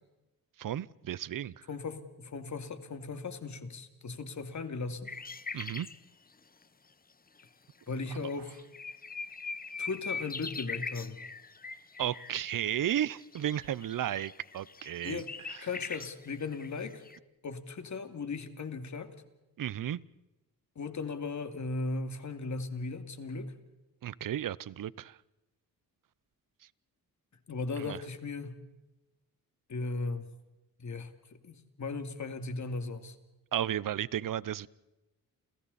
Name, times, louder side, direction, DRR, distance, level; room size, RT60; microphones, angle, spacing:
voice 1, 0.6-1.7 5.5-5.9 8.2-8.3 12.0-15.2 15.5-15.6 19.6-20.0 24.0-25.2 27.8-28.0 33.5-34.7, right 11 dB, 60° right, 0.8 m, -34 dB
voice 2, 1.7-5.1 7.9-8.6 9.8-11.2 15.0-15.3 15.6-17.0 17.4-19.1 20.8-23.5 27.5-28.6 29.7-30.3 30.8-33.2, left 3 dB, 50° left, 2.7 m, -37 dB
sound 1, 5.1-6.0 7.4-7.5 8.0-8.1 8.3-17.2, left 4 dB, 25° left, 1.1 m, -41 dB
29.5 x 29.0 x 4.2 m
cardioid pair, 85°, 36 cm